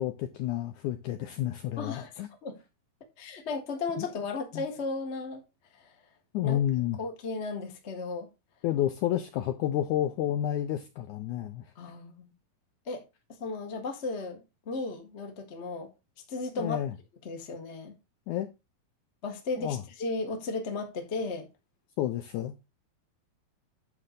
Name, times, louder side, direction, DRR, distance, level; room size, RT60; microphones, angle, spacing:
voice 1, 0.0-2.3 4.0-4.1 4.5-4.6 6.3-7.0 8.6-11.6 16.6-16.9 18.3-18.5 19.5-19.8 22.0-22.5, left 12 dB, 80° left, 1.8 m, -30 dB
voice 2, 1.8-2.1 2.4-2.6 3.2-5.4 5.7-5.9 6.4-6.6 7.0-8.3 11.7-12.3 12.8-13.0 13.3-15.9 16.3-16.8 17.2-17.9 19.2-21.5, left 3 dB, 40° left, 0.9 m, -35 dB
9.7 x 3.4 x 6.6 m
omnidirectional pair, 4.1 m